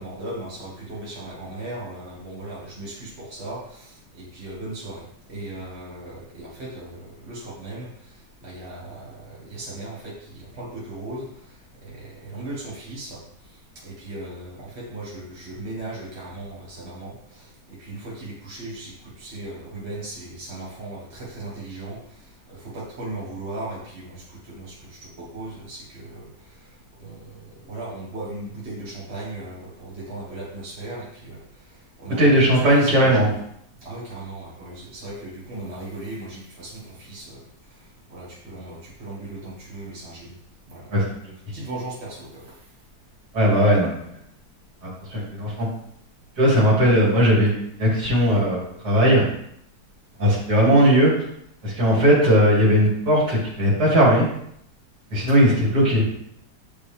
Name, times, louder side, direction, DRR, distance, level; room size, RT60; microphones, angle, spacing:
voice 1, 0.0-7.9 8.4-11.3 11.8-13.2 13.8-22.0 22.5-26.3 27.0-31.4 32.0-32.5 32.8-33.4 33.8-37.4 38.1-40.4 40.7-40.9 41.5-42.5 55.3-55.6, right 2 dB, 40° right, -6 dB, 2.1 m, -37 dB
voice 2, 32.2-33.3 40.9-41.0 43.3-43.9 44.8-45.7 46.4-49.2 50.2-51.1 51.6-54.3 55.1-56.0, equal, 70° right, -5 dB, 3.1 m, -18 dB
9.4 x 5.2 x 3.4 m, 0.71 s
omnidirectional pair, 1.8 m